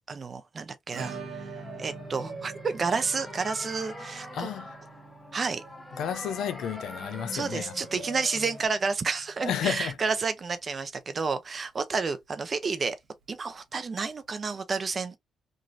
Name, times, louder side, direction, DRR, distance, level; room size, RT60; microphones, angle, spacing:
voice 1, 0.1-1.5 1.8-4.5 5.3-5.6 7.3-13.0 13.3-15.2, right 4 dB, 30° right, 0.4 m, -30 dB
Acoustic guitar / Strum, 0.9-9.5 9.8-9.9 10.2-10.3 10.6-10.7 12.8-12.9 14.0-14.1, right 4 dB, 80° right, 1.1 m, -45 dB
sound 1, 1.6-8.7, equal, 5° left, 0.8 m, -43 dB
voice 2, 4.3-4.8 5.9-7.7 9.4-10.0, left 9 dB, 75° left, 0.4 m, -32 dB
3.1 x 2.5 x 2.5 m
cardioid pair, 145°, 0 cm